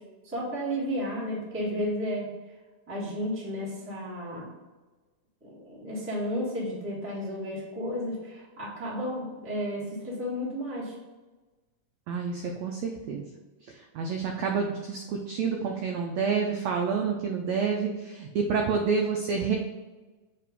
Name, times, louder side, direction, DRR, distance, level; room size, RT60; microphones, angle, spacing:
voice 1, 0.2-2.3 2.9-4.5 5.4-10.9, equal, 5° right, -6 dB, 0.9 m, -32 dB
voice 2, 12.1-13.3 13.9-19.6, right 5 dB, 80° right, 2 dB, 1.5 m, -28 dB
7.6 x 2.9 x 5.2 m, 1.2 s
omnidirectional pair, 3.8 m